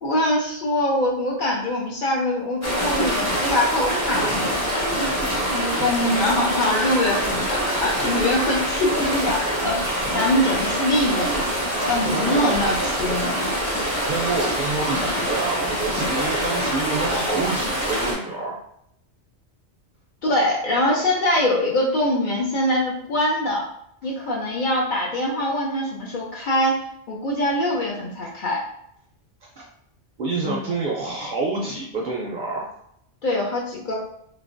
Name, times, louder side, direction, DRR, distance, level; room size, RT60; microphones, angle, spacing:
voice 1, 0.0-4.6 4.9-5.1 5.5-13.5 20.2-23.6 24.0-26.8 27.1-28.6 30.4-30.6 33.2-33.9, left 1 dB, 55° left, -2 dB, 0.6 m, -23 dB
sound 1, 2.6-18.1, equal, 20° left, 0.6 m, -25 dB
voice 2, 12.1-12.6 14.0-18.6 29.6-29.7 30.2-32.7, right 3 dB, 60° right, -3 dB, 0.5 m, -27 dB
3.2 x 2.1 x 2.5 m, 0.72 s
omnidirectional pair, 1.2 m